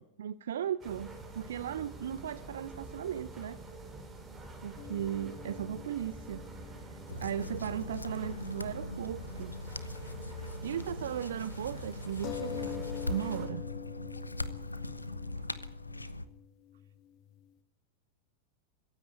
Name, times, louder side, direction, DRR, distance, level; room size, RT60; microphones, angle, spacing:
voice 1, 0.0-3.6 4.6-6.4 6.7-9.6 10.4-13.6 14.5-14.6 15.4-15.5, right 10 dB, 60° right, 17 dB, 0.8 m, -37 dB
sound 1, 0.8-13.5, right 2 dB, 20° right, 7.8 m, -47 dB
sound 2, 4.8-8.6 8.9-9.0 12.2-17.5, left 10 dB, 40° left, 2.1 m, -45 dB
sound 3, 7.1-16.3, left 2 dB, 85° left, 1.2 m, -40 dB
24.0 x 16.0 x 9.5 m, 0.73 s
figure-of-eight pair, 90°, 0 cm